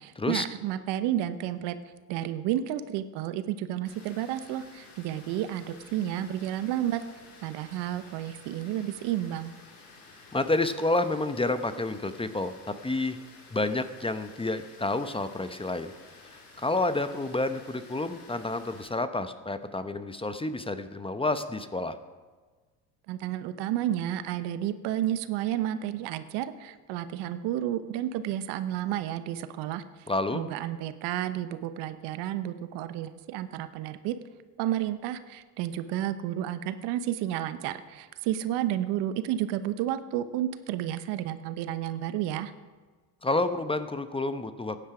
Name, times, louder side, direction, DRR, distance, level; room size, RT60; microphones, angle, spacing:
voice 1, 0.0-1.8 2.1-7.0 7.4-9.5 23.1-29.8 30.3-34.2 34.6-42.5, right 12 dB, 70° right, 12 dB, 1.0 m, -31 dB
Water, 3.9-18.8, left 3 dB, 90° left, 3.5 m, -52 dB
voice 2, 10.3-13.2 13.5-15.9 16.2-22.0 30.1-30.4 43.2-44.9, left 2 dB, 15° left, 10 dB, 0.9 m, -29 dB
15.5 x 10.0 x 5.0 m, 1.4 s
supercardioid pair, 75°, 43 cm